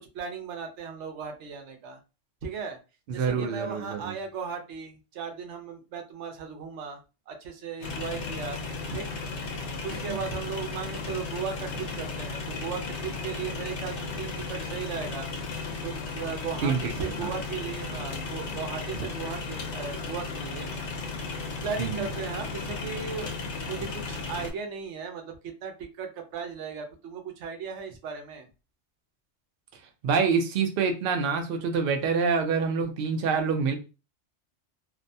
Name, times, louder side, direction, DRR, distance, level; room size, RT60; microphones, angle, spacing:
voice 1, 0.1-2.0 2.4-2.8 3.1-7.0 7.3-8.6 8.9-9.1 9.8-15.3 15.8-20.7 21.6-23.3 23.6-28.5, right 6 dB, 90° right, 5 dB, 0.9 m, -36 dB
voice 2, 3.1-4.1 9.9-10.2 16.6-16.9 17.2-17.3 21.8-22.1 30.0-33.8, right 5 dB, 65° right, 5 dB, 0.7 m, -26 dB
sound 1, 7.8-24.5, left 4 dB, 80° left, 0.9 m, -35 dB
2.6 x 2.1 x 2.6 m, 0.31 s
omnidirectional pair, 1.2 m